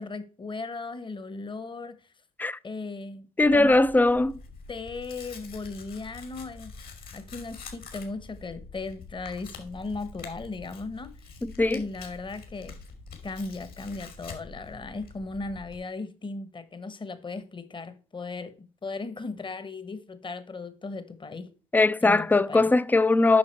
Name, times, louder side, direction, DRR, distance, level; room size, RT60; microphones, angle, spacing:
voice 1, 0.0-2.0 2.6-3.3 3.5-4.2 4.7-6.7 7.1-11.1 11.7-12.8 13.2-21.5 22.0-22.7, left 3 dB, 25° left, 1.2 m, -37 dB
Tearing, 3.4-15.8, left 4 dB, 55° left, 2.8 m, -46 dB
voice 2, 3.4-4.3 11.4-11.8 21.7-23.4, left 2 dB, 10° left, 0.4 m, -20 dB
8.7 x 5.8 x 4.6 m
hypercardioid pair, 55°, 18 cm